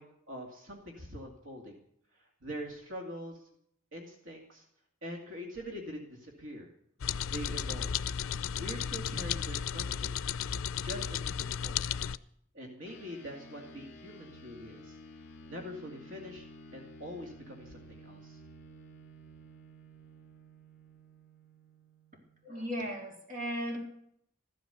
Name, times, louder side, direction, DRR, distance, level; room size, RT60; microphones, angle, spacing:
voice 1, 0.0-1.8 2.1-3.5 3.9-4.7 5.0-6.7 7.3-8.0 8.6-10.3 10.8-12.0 12.5-15.0 15.5-16.4 16.7-18.4, equal, 75° right, 1 dB, 2.4 m, -44 dB
sound 1, 7.0-12.2, left 8 dB, 90° left, 0.5 m, -34 dB
sound 2, 12.9-22.6, equal, 55° left, 2.2 m, -53 dB
voice 2, 22.4-23.8, equal, 40° right, 0 dB, 3.9 m, -36 dB
14.5 x 12.5 x 6.9 m, 0.71 s
head